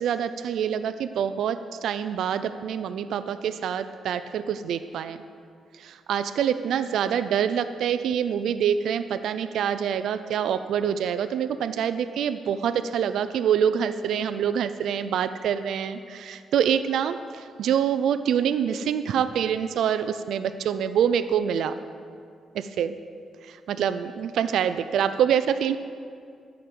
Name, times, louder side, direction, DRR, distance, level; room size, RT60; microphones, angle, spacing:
voice 1, 0.0-5.2 5.8-21.8 22.5-23.0 23.5-25.8, right 8 dB, 80° right, 11 dB, 0.4 m, -26 dB
12.5 x 5.2 x 7.7 m, 2.3 s
cardioid pair, 125°, 0 cm